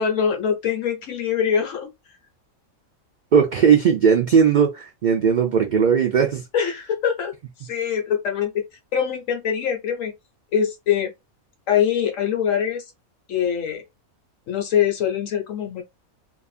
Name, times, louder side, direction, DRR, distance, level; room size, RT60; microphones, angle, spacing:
voice 1, 0.0-1.9 6.5-7.3 7.6-8.5 8.9-10.1 10.5-11.1 11.7-12.8 13.3-13.8 14.5-15.8, left 8 dB, 70° left, 1.2 m, -23 dB
voice 2, 3.3-6.4, right 7 dB, 85° right, 0.4 m, -17 dB
2.6 x 2.4 x 2.4 m
omnidirectional pair, 1.5 m